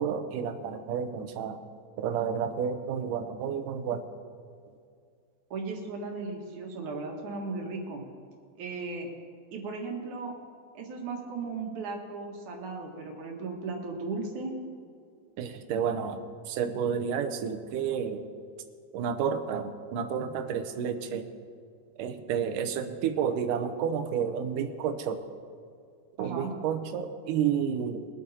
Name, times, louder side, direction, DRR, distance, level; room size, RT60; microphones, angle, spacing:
voice 1, 0.0-1.6 2.0-4.1 15.4-18.2 18.9-21.3 22.0-25.2 26.2-28.1, right 7 dB, 85° right, 8 dB, 2.4 m, -30 dB
voice 2, 5.5-8.0 8.6-9.1 9.5-10.4 10.7-14.5 26.2-26.5, right 3 dB, 65° right, 1 dB, 3.1 m, -36 dB
23.0 x 8.4 x 4.3 m, 2.3 s
omnidirectional pair, 3.7 m